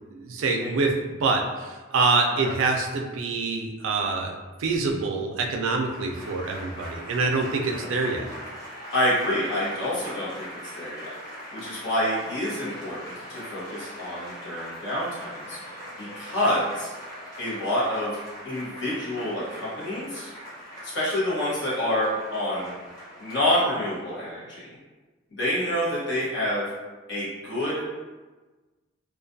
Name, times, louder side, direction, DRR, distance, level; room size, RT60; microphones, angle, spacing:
voice 1, 0.1-8.3, right 3 dB, 80° right, 2 dB, 0.4 m, -26 dB
Applause / Crowd, 5.7-24.3, equal, 20° left, 0.9 m, -41 dB
voice 2, 8.9-11.1 11.5-15.6 16.0-16.9 17.4-18.2 18.4-20.3 20.8-22.7 23.2-24.7 25.4-26.7 27.1-27.9, left 1 dB, 65° left, -8 dB, 1.0 m, -27 dB
2.4 x 2.2 x 2.6 m, 1.3 s
head